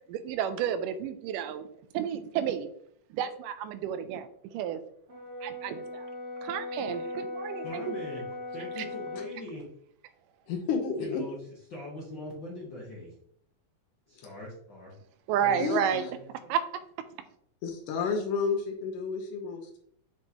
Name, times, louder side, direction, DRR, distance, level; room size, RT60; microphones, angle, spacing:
voice 1, 0.1-1.7 1.9-2.7 3.1-4.8 5.4-6.1 6.4-7.9 8.8-8.9 15.3-17.1, right 9 dB, 85° right, 11 dB, 2.1 m, -31 dB
Brass instrument, 5.1-9.4, left 2 dB, 45° right, 2.2 m, -38 dB
voice 2, 7.6-8.2 8.5-9.6 11.0-11.4 11.7-13.1 14.1-14.9 15.4-16.0 16.4-16.5, left 1 dB, 50° left, -5 dB, 1.4 m, -41 dB
voice 3, 10.5-11.2 14.2-14.3 15.6-15.8 17.6-19.8, left 5 dB, 75° left, 1 dB, 2.4 m, -31 dB
7.4 x 4.7 x 2.9 m, 0.66 s
omnidirectional pair, 3.7 m